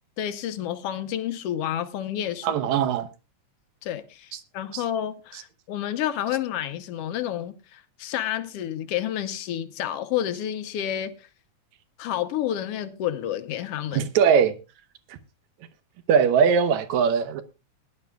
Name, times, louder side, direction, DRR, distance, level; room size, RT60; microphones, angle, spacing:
voice 1, 0.2-2.6 3.8-11.3 12.0-14.1, left 11 dB, 65° left, 1.6 m, -30 dB
voice 2, 2.4-3.1 4.7-4.8 13.9-14.5 16.1-17.4, right 7 dB, 75° right, 2.2 m, -20 dB
20.5 x 11.0 x 2.3 m
omnidirectional pair, 3.4 m